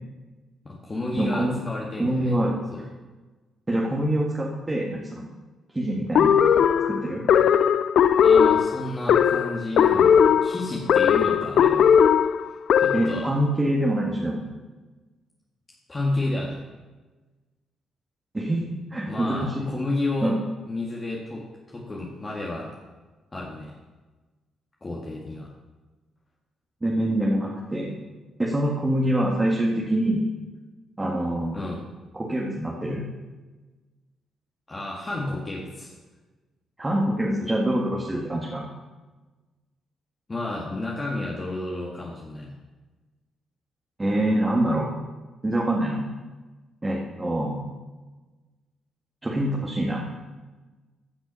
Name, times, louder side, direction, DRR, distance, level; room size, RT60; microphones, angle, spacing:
voice 1, 0.6-2.3 2.7-2.8 8.2-12.0 12.4-13.3 15.9-16.6 19.1-20.3 20.7-22.7 23.3-23.7 24.8-25.5 31.5-31.8 34.7-36.0 40.3-42.5, left 2 dB, 25° left, -3 dB, 2.0 m, -31 dB
voice 2, 1.2-1.6 2.0-2.6 3.7-5.2 5.7-6.4 6.9-7.2 12.9-14.4 18.3-18.6 18.9-19.7 20.2-20.4 26.8-28.0 28.4-30.2 31.0-31.7 32.1-33.0 36.8-38.7 44.0-44.9 45.4-46.0 46.8-47.6 49.2-50.0, right 1 dB, 20° right, -3 dB, 1.9 m, -25 dB
sound 1, 6.1-13.2, left 8 dB, 65° left, 0.5 m, -18 dB
15.0 x 6.2 x 5.6 m, 1.2 s
cardioid pair, 90°, 0 cm